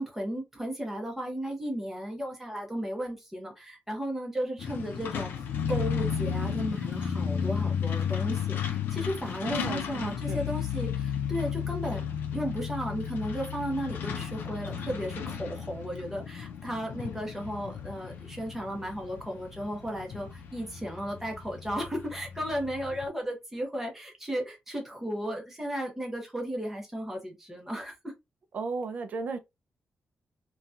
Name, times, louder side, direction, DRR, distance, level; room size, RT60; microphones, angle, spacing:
voice 1, 0.0-27.9, equal, 10° right, 0.8 m, -35 dB
Truck, 4.6-23.1, left 8 dB, 85° left, 0.4 m, -34 dB
voice 2, 9.4-10.4 28.5-29.4, right 4 dB, 45° right, 0.4 m, -35 dB
2.8 x 2.2 x 2.4 m
wide cardioid pair, 165°, 3 cm